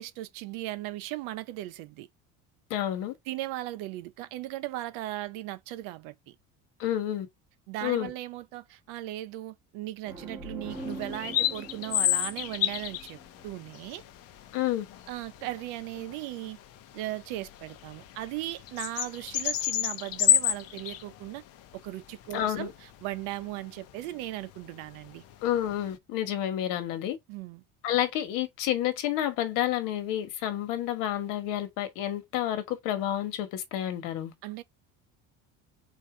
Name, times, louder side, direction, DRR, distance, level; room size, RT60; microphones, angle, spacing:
voice 1, 0.0-2.1 3.3-6.3 7.7-14.0 15.1-16.6 16.9-21.4 21.8-25.2 27.3-27.6 34.4-34.6, right 16 dB, 80° right, 0.7 m, -37 dB
voice 2, 2.7-3.1 6.8-7.3 7.8-8.1 14.5-14.8 22.3-22.7 25.4-27.2 27.8-34.3, left 12 dB, 70° left, 1.2 m, -29 dB
sound 1, 10.0-13.7, right 1 dB, 5° right, 1.1 m, -43 dB
sound 2, 10.7-25.9, left 11 dB, 45° left, 0.6 m, -31 dB
4.0 x 2.7 x 4.7 m
cardioid pair, 165°, 33 cm